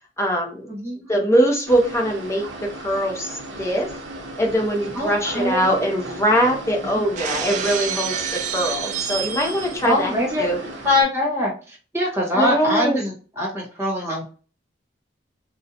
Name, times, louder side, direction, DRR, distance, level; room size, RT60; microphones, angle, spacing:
voice 1, 0.2-0.7 1.1-3.9 4.4-10.1 10.4-10.6 12.3-13.0, equal, 15° left, 0 dB, 0.6 m, -22 dB
voice 2, 0.7-1.1 4.9-5.8 6.9-7.0 9.8-10.5 10.8-14.2, left 1 dB, 15° right, -2 dB, 1.0 m, -23 dB
sound 1, 1.7-11.0, right 1 dB, 90° right, 0.7 m, -36 dB
Shatter, 7.2-9.9, right 7 dB, 40° right, 0.3 m, -28 dB
2.6 x 2.1 x 2.7 m, 0.38 s
head